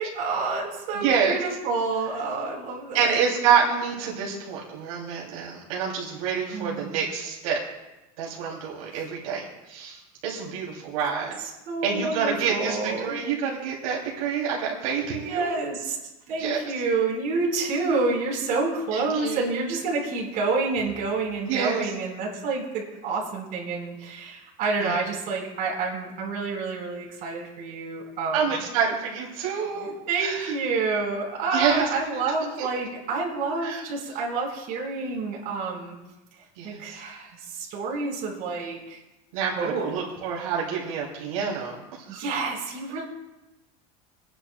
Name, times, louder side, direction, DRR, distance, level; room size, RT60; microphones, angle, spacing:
voice 1, 0.0-3.2 6.5-6.9 8.9-9.0 10.9-11.3 11.7-13.2 15.1-16.0 16.3-28.6 29.6-36.0 36.4-39.0 39.6-40.0 42.1-43.0, right 4 dB, 50° right, -2 dB, 4.4 m, -29 dB
voice 2, 0.9-1.4 2.9-7.6 8.2-11.4 11.8-15.5 16.4-16.6 18.9-19.4 21.4-21.9 24.8-25.0 28.3-29.9 30.2-30.5 31.5-31.9 32.6-32.7 33.6-33.8 36.6-37.0 39.3-42.2, right 6 dB, 90° right, -3 dB, 2.8 m, -27 dB
29.5 x 10.0 x 2.2 m, 1.0 s
supercardioid pair, 140°, 17 cm